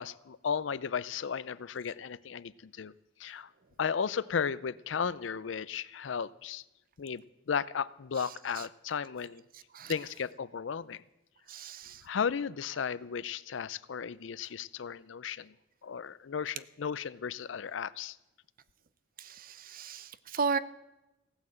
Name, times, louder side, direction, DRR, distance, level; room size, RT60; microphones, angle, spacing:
voice 1, 0.0-2.9 3.2-3.5 3.8-6.6 7.0-9.4 9.9-11.0 12.0-15.5 15.8-18.2, left 6 dB, 75° left, 18 dB, 0.5 m, -35 dB
voice 2, 9.5-9.9 11.5-12.0 19.2-20.6, right 5 dB, 50° right, 16 dB, 0.6 m, -35 dB
16.0 x 9.3 x 7.7 m, 0.96 s
head